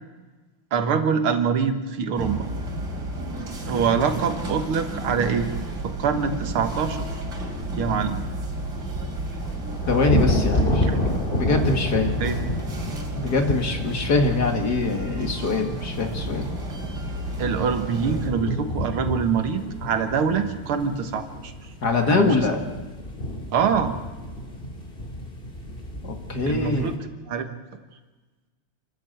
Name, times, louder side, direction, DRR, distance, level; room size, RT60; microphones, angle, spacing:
voice 1, 0.7-2.5 3.7-5.5 5.8-7.2 7.8-8.2 10.8-11.0 12.2-12.4 17.4-21.7 22.1-22.3 23.5-23.9 26.5-27.0 27.3-27.5, right 6 dB, 80° right, 7 dB, 2.3 m, -24 dB
sound 1, 2.1-18.3, equal, 50° right, 3.6 m, -32 dB
sound 2, 7.4-27.0, left 1 dB, 25° left, 2.4 m, -30 dB
voice 2, 9.9-11.0 11.3-12.2 13.1-16.5 21.8-22.6 26.0-26.9, left 3 dB, 50° left, 4 dB, 2.4 m, -23 dB
27.5 x 13.5 x 8.1 m, 1.3 s
omnidirectional pair, 2.4 m